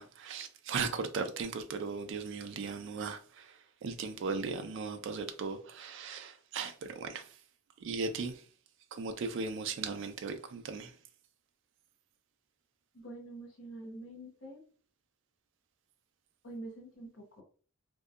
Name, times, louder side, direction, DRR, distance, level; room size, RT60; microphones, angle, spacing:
voice 1, 0.0-7.3 7.8-8.4 8.9-10.9, right 4 dB, 60° right, 0.3 m, -37 dB
voice 2, 12.9-14.6 16.4-17.4, right 2 dB, 60° left, 0.6 m, -46 dB
2.6 x 2.2 x 2.3 m
head